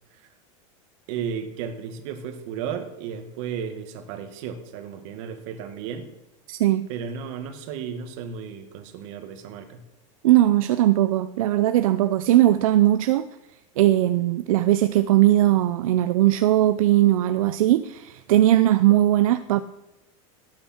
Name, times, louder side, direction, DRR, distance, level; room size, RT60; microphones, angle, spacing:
voice 1, 1.1-6.1 6.9-9.8, right 7 dB, 65° right, 7 dB, 2.0 m, -34 dB
voice 2, 6.5-6.9 10.2-13.3 13.8-19.6, right 14 dB, 85° right, 12 dB, 0.6 m, -19 dB
17.5 x 8.8 x 4.5 m, 0.91 s
supercardioid pair, 130°, 17 cm